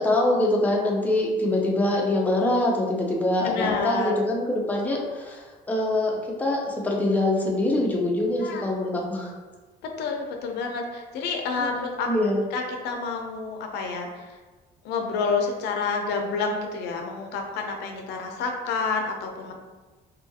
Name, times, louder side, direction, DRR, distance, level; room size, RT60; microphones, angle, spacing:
voice 1, 0.0-9.3 11.6-11.8 12.1-12.4, left 1 dB, 10° left, -2 dB, 0.5 m, -24 dB
voice 2, 3.4-4.1 8.4-8.7 9.8-12.1 12.5-14.4 14.8-19.5, left 4 dB, 80° left, 2 dB, 0.4 m, -29 dB
2.7 x 2.4 x 2.6 m, 1.3 s
cardioid pair, 110°, 17 cm